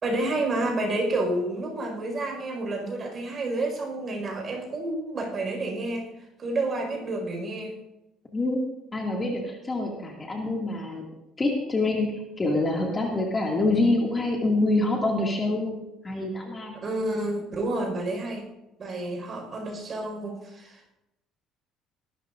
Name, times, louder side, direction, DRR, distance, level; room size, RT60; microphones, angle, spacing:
voice 1, 0.0-6.1 6.4-7.7 16.8-18.5 18.8-20.8, right 2 dB, 35° right, 2 dB, 5.0 m, -29 dB
voice 2, 8.9-11.0 11.4-16.8, left 2 dB, 20° left, -1 dB, 2.2 m, -26 dB
21.0 x 13.0 x 2.6 m, 0.92 s
cardioid pair, 125°, 0 cm